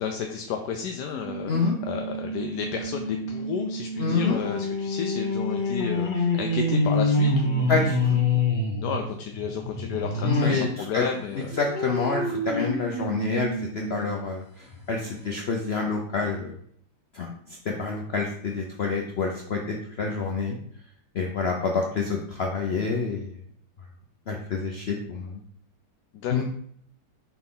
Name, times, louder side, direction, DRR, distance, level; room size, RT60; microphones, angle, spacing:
voice 1, 0.0-7.9 8.3-8.4 8.8-11.5 26.1-26.4, left 7 dB, 70° left, 3 dB, 1.1 m, -32 dB
sound 1, 1.1-10.7 11.1-14.2 14.7-14.8 15.1-15.2, left 2 dB, 40° left, 0.8 m, -27 dB
voice 2, 1.5-1.8 4.0-4.4 7.7-8.2 10.2-11.0 11.4-16.5 17.1-17.3 17.7-20.6 21.1-23.3 24.3-25.4 26.3-26.4, left 4 dB, 85° left, 1 dB, 0.5 m, -27 dB
6.1 x 4.3 x 3.7 m, 0.65 s
omnidirectional pair, 2.0 m